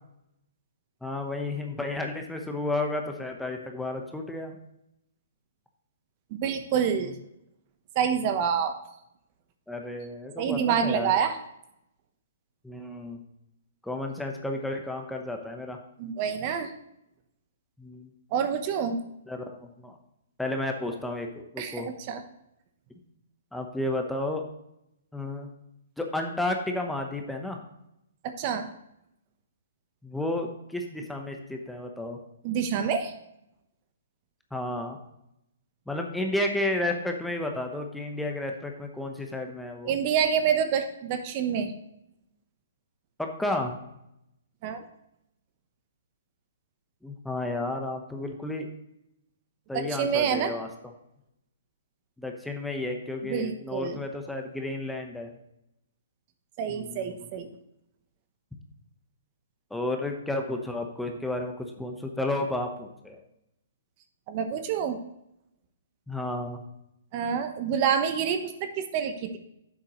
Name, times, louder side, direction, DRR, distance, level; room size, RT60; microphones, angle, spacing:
voice 1, 1.0-4.6 9.7-11.1 12.6-13.2 13.8-15.8 17.8-18.1 19.3-20.0 20.4-21.3 21.5-21.9 23.5-24.4 25.1-25.5 26.0-27.6 30.0-32.2 34.5-35.0 35.9-39.9 43.2-43.8 47.0-48.7 49.7-50.7 52.2-55.3 56.7-57.2 59.7-63.2 66.1-66.6, left 2 dB, 5° left, 3 dB, 1.0 m, -32 dB
voice 2, 6.3-7.1 7.9-8.7 10.4-11.4 16.0-16.7 18.3-19.0 21.6-22.2 28.2-28.7 32.4-33.1 39.8-41.7 44.6-44.8 49.7-50.5 53.2-54.0 56.6-57.5 64.3-65.0 67.1-69.4, right 7 dB, 35° right, 8 dB, 0.9 m, -27 dB
10.5 x 7.4 x 3.1 m, 0.81 s
hypercardioid pair, 145°, 0 cm